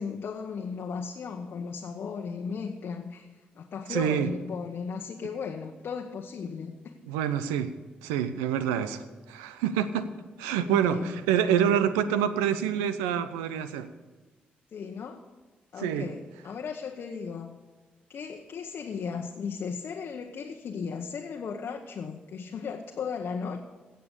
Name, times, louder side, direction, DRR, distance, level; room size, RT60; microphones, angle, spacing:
voice 1, 0.0-3.3 3.5-6.8 10.5-11.1 14.7-15.2 15.7-17.6 18.1-23.7, left 6 dB, 60° left, 2 dB, 1.0 m, -36 dB
voice 2, 3.9-4.3 7.1-7.7 8.0-9.0 9.3-10.1 10.4-13.9 15.8-16.1, right 9 dB, 90° right, 13 dB, 0.6 m, -26 dB
16.5 x 6.8 x 6.7 m, 1.3 s
hypercardioid pair, 45°, 4 cm